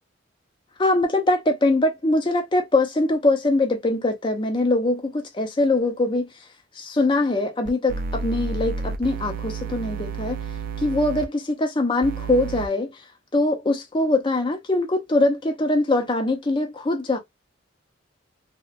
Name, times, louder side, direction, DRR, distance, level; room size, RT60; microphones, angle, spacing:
voice 1, 0.8-6.3 6.8-10.4 10.8-12.9 13.3-17.2, left 2 dB, 25° left, 0.5 m, -22 dB
sound 1, 7.7-11.3 12.0-12.7, right 4 dB, 45° right, 0.4 m, -31 dB
2.8 x 2.3 x 2.4 m
head